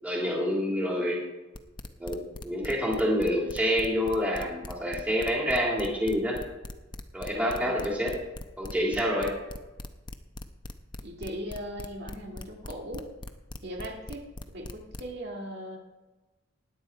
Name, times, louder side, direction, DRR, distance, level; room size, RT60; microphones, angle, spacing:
voice 1, 0.0-1.2 2.0-6.4 7.1-8.1 8.6-9.3, equal, 5° right, -3 dB, 3.1 m, -27 dB
sound 1, 1.5-15.1, left 2 dB, 25° left, 0.8 m, -40 dB
voice 2, 7.3-7.9 11.0-13.1 13.6-14.2 14.5-15.8, equal, 55° right, 0 dB, 2.2 m, -39 dB
17.0 x 10.0 x 4.6 m, 1.1 s
head